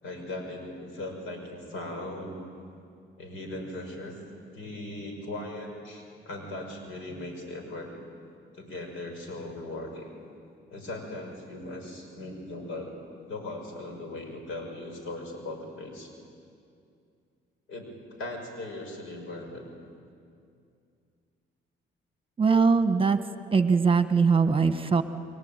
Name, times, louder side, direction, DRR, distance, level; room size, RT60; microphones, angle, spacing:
voice 1, 0.0-2.4 3.2-4.2 4.5-7.9 8.5-10.1 10.7-13.0 13.3-16.1 17.7-17.9 18.2-19.6, left 2 dB, 80° left, 4 dB, 6.0 m, -38 dB
voice 2, 22.4-23.2 23.5-25.0, right 5 dB, 25° right, 9 dB, 1.4 m, -21 dB
29.5 x 22.0 x 9.1 m, 2.4 s
cardioid pair, 90°, 20 cm